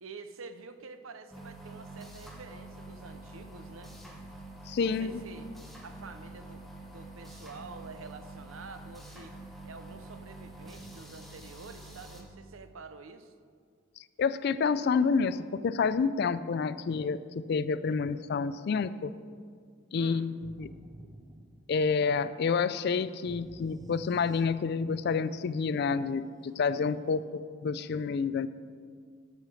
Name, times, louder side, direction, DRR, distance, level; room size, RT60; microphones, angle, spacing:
voice 1, 0.0-3.9 4.8-5.5 5.8-9.3 9.6-13.3 17.9-18.0 20.0-20.3, right 4 dB, 90° right, 10 dB, 0.7 m, -48 dB
sound 1, 1.3-12.2, right 2 dB, ahead, 1.0 m, -47 dB
voice 2, 4.7-5.2 14.2-17.2 17.5-19.1 19.9-20.7 21.7-28.5, left 5 dB, 55° left, 15 dB, 0.3 m, -29 dB
sound 2, 20.4-22.1 23.3-24.9, right 1 dB, 20° right, 0.6 m, -51 dB
13.5 x 5.0 x 6.2 m, 2.1 s
head